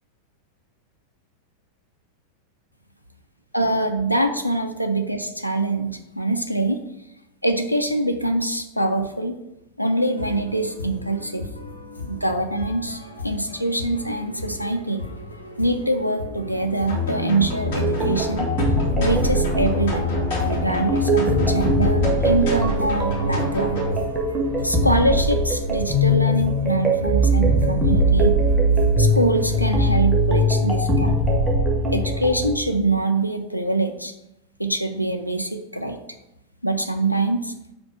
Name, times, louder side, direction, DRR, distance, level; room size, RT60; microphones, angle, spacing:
voice 1, 3.5-6.8 7.4-9.4 9.8-11.5 12.1-15.0 15.6-18.5 19.0-20.1 20.4-23.8 24.6-28.4 29.0-31.2 31.9-34.1 34.6-36.0 36.6-37.5, right 2 dB, 90° right, 5 dB, 0.5 m, -24 dB
sound 1, 9.9-29.9, left 2 dB, 80° left, 0.9 m, -36 dB
sound 2, 16.9-23.9, left 3 dB, 55° left, 2.7 m, -27 dB
sound 3, 17.7-32.6, right 1 dB, 15° right, 1.5 m, -21 dB
5.1 x 4.2 x 5.8 m, 0.88 s
figure-of-eight pair, 90°, 0 cm